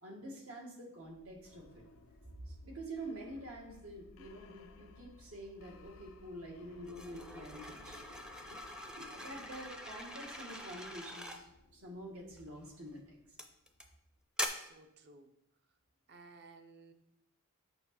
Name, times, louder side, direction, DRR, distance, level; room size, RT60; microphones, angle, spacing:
voice 1, 0.0-1.8 2.5-8.0 8.5-8.6 8.9-11.5 11.7-13.2, right 1 dB, 80° right, -1 dB, 1.9 m, -47 dB
sound 1, 1.1-13.8, left 3 dB, 65° left, 0.6 m, -60 dB
sound 2, 6.8-11.4 12.4-12.7 13.4-13.8 14.4-14.5, left 1 dB, 5° right, 0.5 m, -43 dB
voice 2, 14.5-15.3 16.1-16.9, right 3 dB, 50° right, 7 dB, 0.7 m, -57 dB
6.8 x 5.5 x 4.3 m, 0.81 s
head